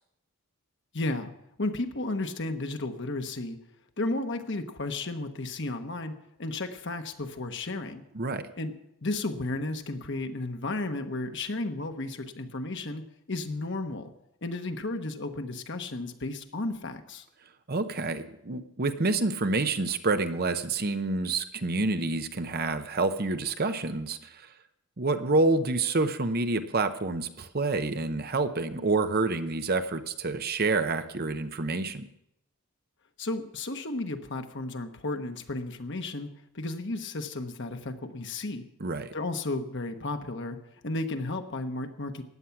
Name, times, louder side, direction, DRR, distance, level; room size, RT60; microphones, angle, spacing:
voice 1, 0.9-1.3 1.6-3.6 4.0-8.0 8.6-8.7 9.0-13.0 13.3-14.1 14.4-17.2 33.2-36.3 36.5-38.6 39.1-40.6 40.8-42.2, left 2 dB, 55° left, 6 dB, 1.2 m, -33 dB
voice 2, 8.1-8.5 17.7-24.5 25.0-32.1 38.8-39.1, right 3 dB, 45° right, 9 dB, 0.8 m, -28 dB
15.5 x 10.0 x 5.9 m, 0.79 s
head